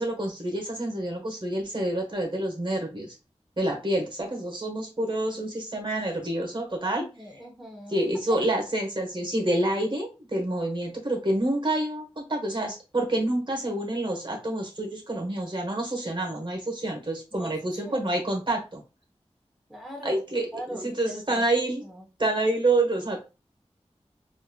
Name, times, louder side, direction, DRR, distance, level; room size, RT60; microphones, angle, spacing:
voice 1, 0.0-3.1 3.6-7.1 7.9-18.8 20.0-21.8 22.2-23.2, right 1 dB, 45° right, 2 dB, 1.2 m, -28 dB
voice 2, 7.0-8.0 17.3-17.5 17.8-18.0 19.7-20.2 20.5-21.4 21.8-22.1, right 1 dB, ahead, -1 dB, 1.0 m, -40 dB
4.4 x 2.5 x 2.2 m, 0.30 s
wide cardioid pair, 50°, 12 cm